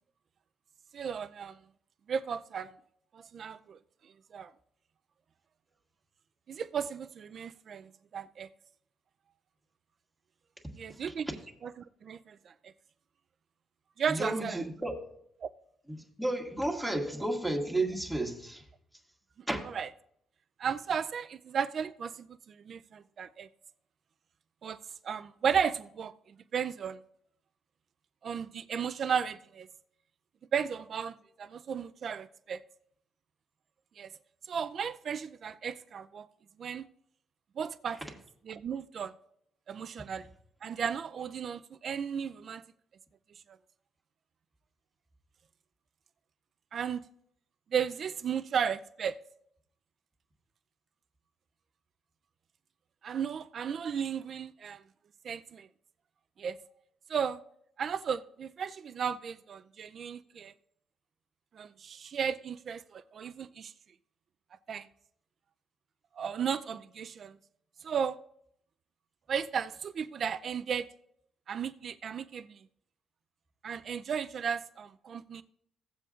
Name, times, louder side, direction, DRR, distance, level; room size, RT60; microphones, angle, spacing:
voice 1, 0.9-1.6 2.1-2.7 3.1-3.8 4.3-4.5 6.5-8.5 10.7-11.3 12.0-12.5 14.0-14.6 15.4-15.5 19.7-19.9 20.6-23.5 24.6-24.8 25.0-26.1 26.5-27.0 28.2-29.7 30.5-32.6 34.0-34.1 34.5-36.3 36.6-36.9 37.6-38.0 38.5-39.1 39.7-40.3 40.6-42.6 46.7-47.0 47.7-49.2 53.0-54.8 55.2-55.7 56.4-56.6 57.1-57.4 57.8-60.5 61.5-63.7 64.7-64.9 66.1-67.4 67.8-68.2 69.3-70.9 71.5-72.6 73.6-75.4, right 7 dB, 55° right, 0.5 m, -34 dB
voice 2, 14.1-14.9 15.9-18.6 19.5-19.6, right 1 dB, ahead, 1.9 m, -32 dB
16.5 x 7.7 x 2.5 m
cardioid pair, 90°, 0 cm